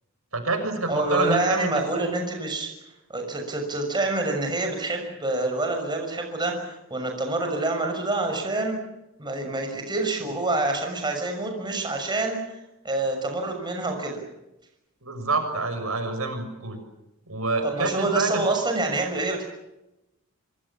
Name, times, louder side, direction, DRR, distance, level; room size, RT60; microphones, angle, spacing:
voice 1, 0.3-2.1 15.0-16.8 17.3-18.4, right 3 dB, 80° right, 6 dB, 6.5 m, -27 dB
voice 2, 0.9-2.7 3.1-8.8 9.2-12.6 12.8-14.2 17.6-19.4, right 2 dB, 20° right, 3 dB, 6.2 m, -27 dB
26.0 x 25.0 x 7.3 m, 0.93 s
head